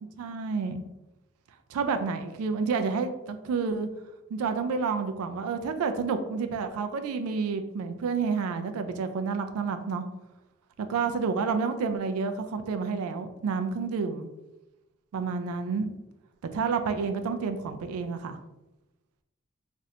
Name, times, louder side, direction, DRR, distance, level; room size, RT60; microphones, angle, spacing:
voice 1, 0.2-0.8 1.7-3.9 4.3-10.0 10.8-14.3 15.1-15.9 16.5-18.4, right 5 dB, 85° right, 8 dB, 0.3 m, -29 dB
3.1 x 2.5 x 2.7 m, 0.96 s
head